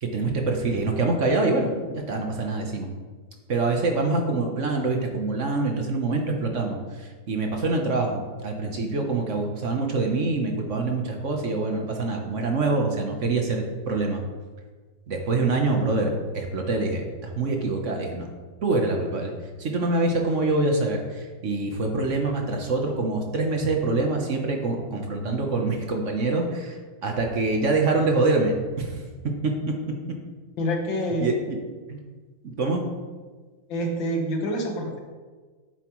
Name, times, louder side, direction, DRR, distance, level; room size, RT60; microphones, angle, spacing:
voice 1, 0.0-2.9 3.5-14.2 15.1-18.3 18.6-19.3 19.6-29.0 29.4-29.7 31.2-31.6 31.9-32.0 32.4-32.8, right 3 dB, 50° right, 2 dB, 1.1 m, -25 dB
voice 2, 30.6-31.4 33.7-35.0, equal, 80° left, 1 dB, 2.1 m, -27 dB
10.5 x 7.7 x 3.1 m, 1.4 s
omnidirectional pair, 2.1 m